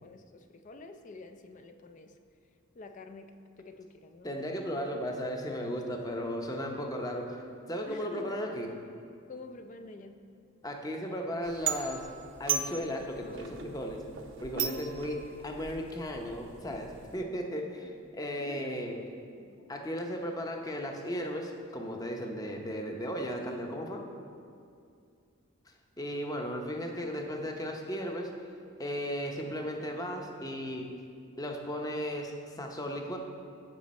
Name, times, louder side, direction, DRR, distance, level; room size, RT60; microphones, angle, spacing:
voice 1, 0.0-2.2 2.7-4.4 7.9-8.4 9.3-10.2 14.5-14.9 18.0-18.8 19.4-19.7 22.2-22.3, left 2 dB, 35° left, 8 dB, 0.4 m, -48 dB
voice 2, 4.2-7.4 7.7-8.7 10.6-12.1 12.4-14.0 14.4-19.0 19.7-24.0 26.0-28.3 28.8-30.9 31.4-33.2, equal, 15° left, 2 dB, 0.7 m, -35 dB
sound 1, 11.4-17.2, right 8 dB, 60° right, 0.7 m, -38 dB
14.0 x 5.1 x 4.2 m, 2.4 s
head